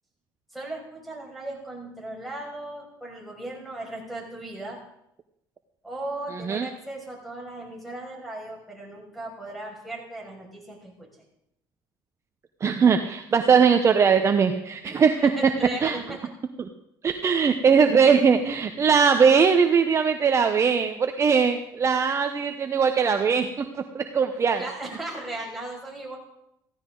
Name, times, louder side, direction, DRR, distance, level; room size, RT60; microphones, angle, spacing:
voice 1, 0.5-4.8 5.8-10.9 13.3-13.4 14.8-16.2 17.2-17.4 24.6-26.2, right 2 dB, ahead, -1 dB, 6.1 m, -37 dB
voice 2, 6.3-6.7 12.6-15.3 15.8-16.0 16.6-16.7 17.0-23.7 23.9-24.6, right 6 dB, 35° right, 7 dB, 1.0 m, -20 dB
15.5 x 15.5 x 3.9 m, 0.80 s
cardioid pair, 105°, 9 cm